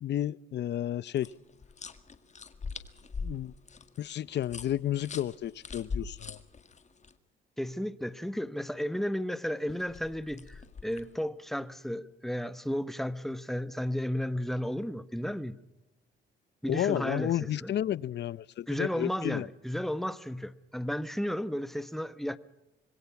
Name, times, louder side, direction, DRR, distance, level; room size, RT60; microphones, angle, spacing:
voice 1, 0.0-1.3 3.2-3.5 4.0-6.4 16.7-19.5, left 11 dB, 60° left, 0.7 m, -32 dB
sound 1, 1.2-7.1 9.7-11.2, left 4 dB, 35° left, 1.9 m, -42 dB
voice 2, 7.6-15.6 16.6-17.7 18.7-22.4, equal, ahead, 1.2 m, -33 dB
26.0 x 21.5 x 5.9 m
cardioid pair, 90°, 20 cm